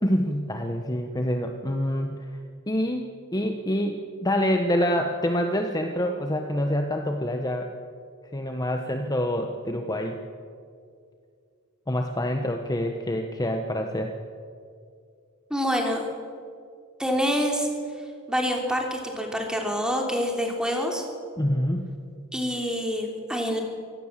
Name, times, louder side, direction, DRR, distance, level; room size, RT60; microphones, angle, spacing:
voice 1, 0.0-2.2 2.7-7.7 8.3-10.2 11.9-14.1 21.4-21.9, equal, 20° left, 4 dB, 1.1 m, -26 dB
voice 2, 15.5-16.0 17.0-17.7 18.3-21.1 22.3-23.6, equal, 5° right, 2 dB, 3.3 m, -26 dB
24.0 x 17.5 x 7.5 m, 2.2 s
head